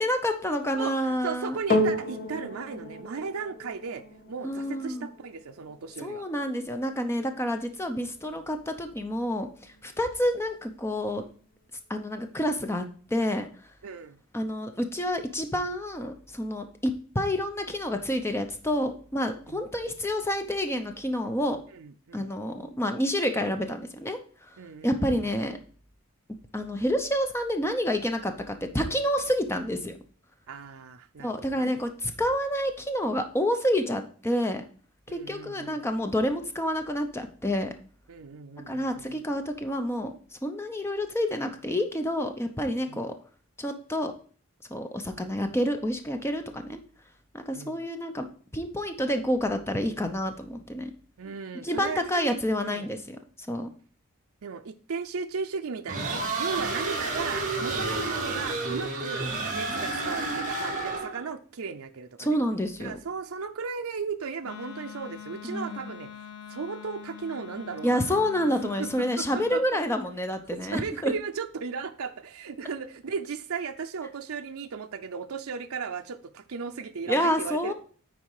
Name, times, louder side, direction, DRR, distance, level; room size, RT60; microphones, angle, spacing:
voice 1, 0.0-1.6 4.4-5.1 6.0-11.2 11.9-12.9 13.1-13.5 14.3-21.6 22.1-24.2 24.8-25.6 26.5-30.0 31.2-34.6 35.1-37.7 38.7-40.1 40.4-43.1 43.6-44.1 44.7-46.8 47.3-48.3 48.5-50.9 51.6-53.2 53.5-53.7 56.6-56.7 62.2-63.0 65.4-65.9 67.8-71.1 77.1-77.7, equal, 10° left, 6 dB, 0.7 m, -28 dB
voice 2, 0.7-6.3 13.8-14.2 19.5-19.6 21.7-22.3 24.6-25.3 30.5-31.7 35.1-35.9 38.1-39.2 42.9-43.1 47.5-47.8 51.2-52.9 54.4-62.4 62.8-66.1 66.5-68.5 68.8-69.8 70.5-77.7, right 5 dB, 70° right, 6 dB, 0.5 m, -36 dB
sound 1, 1.7-10.3 11.0-11.1, left 1 dB, 40° left, 1.4 m, -34 dB
sound 2, 55.9-61.2, right 3 dB, 35° right, 2.0 m, -30 dB
Wind instrument woodwind instrument, 64.4-69.6, left 9 dB, 70° left, 0.9 m, -44 dB
9.4 x 4.3 x 4.8 m, 0.43 s
head